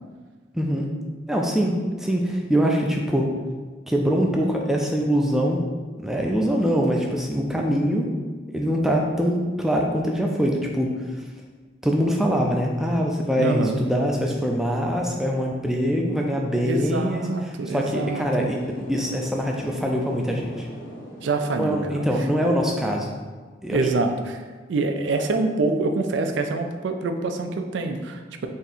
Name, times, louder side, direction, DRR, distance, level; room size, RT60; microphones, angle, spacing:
voice 1, 0.5-0.9 1.3-3.3 3.9-5.6 6.0-8.1 8.5-10.9 11.8-17.3 17.7-20.7 21.6-23.1 23.6-23.9, equal, ahead, 0 dB, 0.3 m, -23 dB
voice 2, 13.4-13.8 16.6-18.5 21.2-22.1 23.7-24.4 24.7-28.5, right 3 dB, 75° right, 6 dB, 0.4 m, -25 dB
sound 1, 18.4-22.6, equal, 45° left, 0.6 m, -41 dB
3.4 x 2.7 x 4.1 m, 1.4 s
head